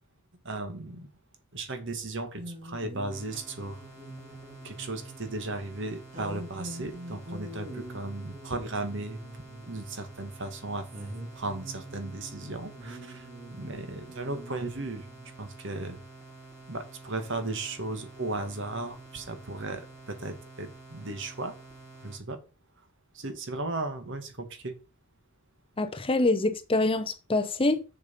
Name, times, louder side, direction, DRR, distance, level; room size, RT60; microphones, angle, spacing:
voice 1, 0.4-1.1 1.5-3.8 4.6-9.2 9.7-10.8 11.3-15.1 15.4-16.0 16.7-21.5 22.0-22.4 23.1-24.7, right 2 dB, 55° right, 1.6 m, -36 dB
sound 1, 2.4-5.4 6.1-10.1 10.9-15.3 17.4-17.5, right 1 dB, 35° right, 2.4 m, -44 dB
sound 2, 3.1-22.2, right 2 dB, 10° right, 4.0 m, -49 dB
voice 2, 25.8-27.8, left 2 dB, 25° left, 0.7 m, -25 dB
7.1 x 6.6 x 5.2 m
head